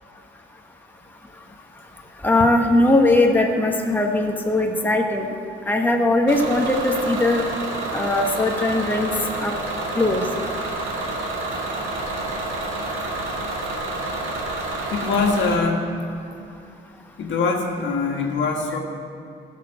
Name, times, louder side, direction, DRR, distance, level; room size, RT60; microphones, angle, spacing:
voice 1, 2.2-5.3 5.7-7.4 7.9-9.1 9.4-9.5 9.9-10.3, left 2 dB, 10° left, 1 dB, 1.2 m, -19 dB
Bus / Engine, 6.3-15.6, right 2 dB, 85° right, 2.1 m, -28 dB
voice 2, 14.8-15.9 17.2-18.8, left 4 dB, 65° left, 1 dB, 1.8 m, -23 dB
13.5 x 6.7 x 7.7 m, 2.5 s
cardioid pair, 90°, 20 cm